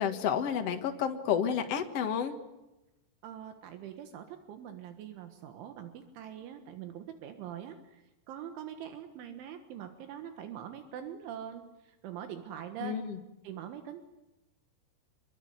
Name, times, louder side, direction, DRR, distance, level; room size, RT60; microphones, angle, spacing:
voice 1, 0.0-2.3 12.8-13.2, left 8 dB, 80° left, 5 dB, 1.3 m, -30 dB
voice 2, 3.2-13.0 13.4-14.0, right 9 dB, 75° right, 7 dB, 3.9 m, -43 dB
26.5 x 22.5 x 9.6 m, 0.99 s
omnidirectional pair, 5.5 m